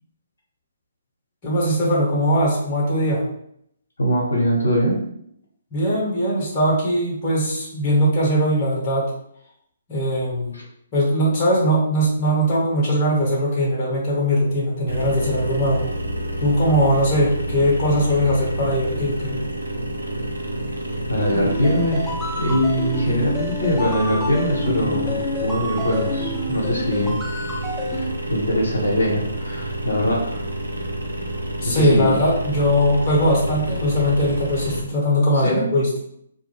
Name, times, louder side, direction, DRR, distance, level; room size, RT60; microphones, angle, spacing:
voice 1, 1.4-3.2 5.7-9.1 9.9-10.5 10.9-15.9 16.4-19.4 31.6-36.0, equal, 35° left, -4 dB, 0.9 m, -20 dB
voice 2, 4.0-5.0 10.5-10.6 21.1-22.1 22.4-27.2 27.9-30.4 31.6-32.2 35.4-35.7, equal, 75° left, -3 dB, 0.8 m, -22 dB
sound 1, 14.9-34.8, right 1 dB, 80° right, 0.5 m, -29 dB
sound 2, 21.2-28.0, left 1 dB, ahead, 0.5 m, -29 dB
2.4 x 2.0 x 3.1 m, 0.70 s
figure-of-eight pair, 130°, 0 cm